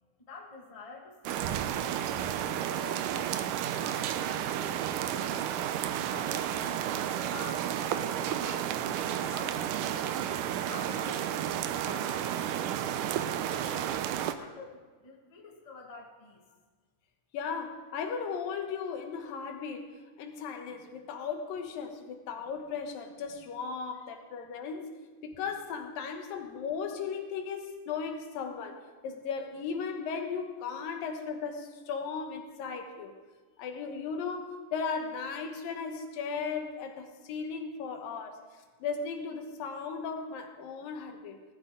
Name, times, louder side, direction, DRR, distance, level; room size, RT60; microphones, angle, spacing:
voice 1, 0.2-3.5 3.8-5.7 6.1-10.3 10.7-12.8 13.4-14.0 14.4-16.4 24.0-24.2 33.3-33.6, left 3 dB, 20° left, -1 dB, 1.0 m, -48 dB
sound 1, 1.3-14.3, right 10 dB, 80° right, 2.1 m, -32 dB
voice 2, 17.3-25.0 25.2-33.2 33.6-38.4 38.8-41.4, left 5 dB, 85° left, 5 dB, 2.9 m, -36 dB
18.5 x 13.0 x 3.8 m, 1.4 s
omnidirectional pair, 4.0 m